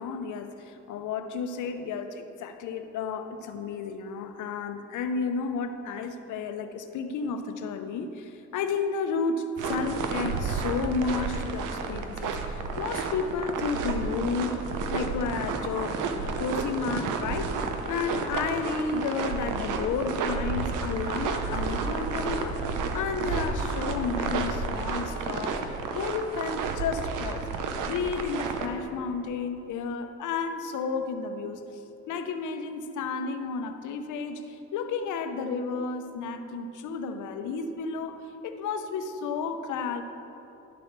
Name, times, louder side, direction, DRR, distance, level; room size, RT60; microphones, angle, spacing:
voice 1, 0.0-14.6 14.9-22.6 22.9-40.0, left 5 dB, 80° left, 8 dB, 0.7 m, -32 dB
walking on snow in Ouje, 9.6-28.7, right 4 dB, 90° right, 0.8 m, -31 dB
11.0 x 4.4 x 6.6 m, 2.9 s
cardioid pair, 90°, 30 cm